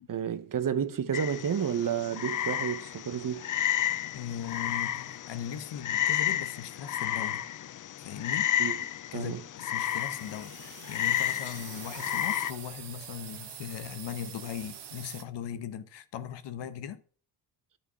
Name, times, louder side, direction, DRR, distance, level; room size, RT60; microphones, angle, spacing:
voice 1, 0.0-3.5 8.6-8.8 9.1-9.4, right 8 dB, 45° right, 1.1 m, -31 dB
Frog, 1.1-12.5, left 11 dB, 45° left, 0.6 m, -32 dB
voice 2, 4.1-7.4 8.0-8.5 9.1-17.0, left 9 dB, 70° left, 1.1 m, -39 dB
sound 1, 9.7-15.2, right 9 dB, 65° right, 1.4 m, -45 dB
11.0 x 5.2 x 5.7 m
supercardioid pair, 50°, 44 cm